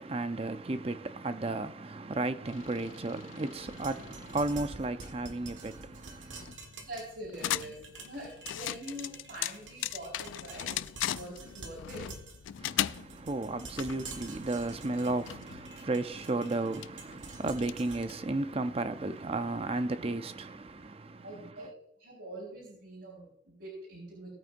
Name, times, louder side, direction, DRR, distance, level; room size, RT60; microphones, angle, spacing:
voice 1, 0.0-6.5 12.6-21.5, right 2 dB, 30° right, 0.6 m, -34 dB
sound 1, 2.4-18.4, left 12 dB, 85° left, 0.3 m, -40 dB
sound 2, 3.6-19.7, right 3 dB, 80° right, 1.5 m, -49 dB
voice 2, 6.8-10.8 11.0-12.1 21.2-21.7 22.0-24.3, right 1 dB, 65° right, 4.7 m, -44 dB
19.0 x 8.9 x 2.6 m
head